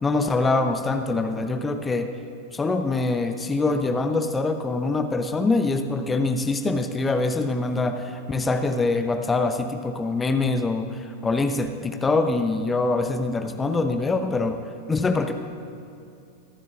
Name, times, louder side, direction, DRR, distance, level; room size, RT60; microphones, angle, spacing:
voice 1, 0.0-2.1 2.5-14.6 14.9-15.3, left 3 dB, 15° left, 7 dB, 0.7 m, -24 dB
22.5 x 11.0 x 2.5 m, 2.7 s
figure-of-eight pair, 90°, 0 cm